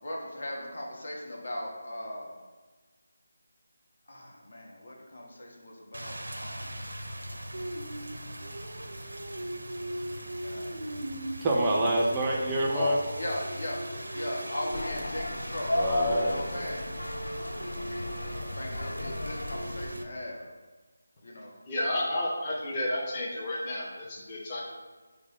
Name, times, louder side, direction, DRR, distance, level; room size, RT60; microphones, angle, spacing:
voice 1, 0.0-2.4 4.1-6.8 10.4-11.0 12.7-13.8 14.1-15.8 16.2-16.9 18.4-20.5 21.2-21.5, left 1 dB, 70° left, -1 dB, 1.0 m, -38 dB
Rain, 5.9-20.0, right 1 dB, 85° right, 0.5 m, -38 dB
voice 2, 11.4-13.0 15.7-16.4, right 1 dB, 15° right, -2 dB, 0.3 m, -26 dB
sound 1, 14.7-19.9, left 2 dB, 85° left, 0.4 m, -34 dB
voice 3, 21.7-24.6, left 1 dB, 20° left, -5 dB, 0.7 m, -31 dB
4.5 x 2.0 x 4.5 m, 1.3 s
figure-of-eight pair, 170°, 0 cm